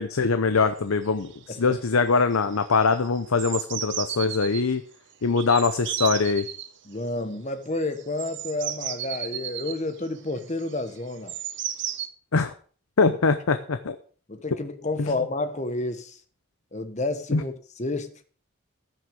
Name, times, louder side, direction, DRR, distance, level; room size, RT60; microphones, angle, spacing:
voice 1, 0.0-4.8 5.2-6.5 12.3-12.5 13.0-14.0 15.0-15.1 17.3-17.4, left 4 dB, 85° left, 0.7 m, -23 dB
sound 1, 0.8-0.9 1.0-1.4 1.7-2.1 2.3-4.6 5.4-6.7 7.8-12.1, right 11 dB, 55° right, 0.9 m, -34 dB
voice 2, 6.9-11.3 13.1-13.2 14.3-16.2 16.7-18.1, left 2 dB, 35° left, 1.2 m, -30 dB
14.5 x 6.4 x 5.2 m
head